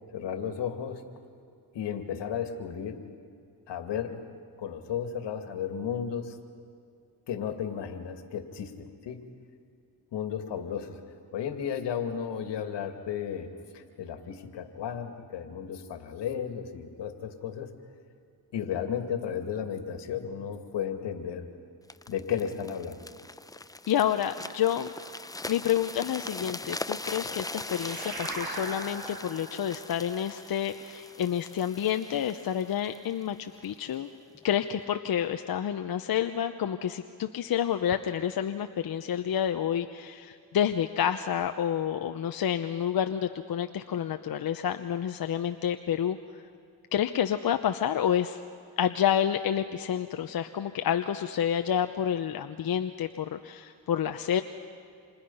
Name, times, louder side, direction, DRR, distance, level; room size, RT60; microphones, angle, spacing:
voice 1, 0.1-1.0 1.7-3.0 3.7-4.2 4.6-6.4 7.3-9.2 10.1-11.0 11.3-17.7 18.5-21.5 22.1-23.0, left 8 dB, 80° left, 6 dB, 2.5 m, -34 dB
sound 1, 21.9-33.7 34.3-34.5, left 2 dB, 10° left, 0.6 m, -41 dB
voice 2, 23.9-24.9 25.5-34.1 34.4-46.2 46.9-48.4 48.8-54.4, left 9 dB, 55° left, 7 dB, 1.0 m, -29 dB
sound 2, 27.1-31.9, right 3 dB, 60° right, 7.5 m, -42 dB
29.5 x 27.5 x 5.7 m, 2.4 s
cardioid pair, 80°, 42 cm